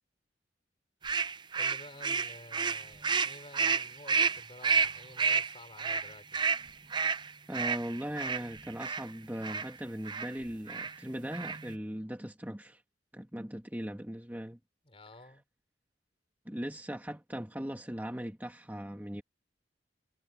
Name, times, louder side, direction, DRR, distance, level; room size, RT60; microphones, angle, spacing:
sound 1, 1.0-9.0 9.4-9.7 10.1-10.3 10.7-11.0 11.3-11.7, right 5 dB, 25° right, 0.5 m, -30 dB
voice 1, 1.5-6.4 14.8-15.4, left 1 dB, 30° left, 4.4 m, -52 dB
voice 2, 7.5-12.8 13.1-14.6 16.4-19.2, equal, 10° right, 1.6 m, -39 dB
head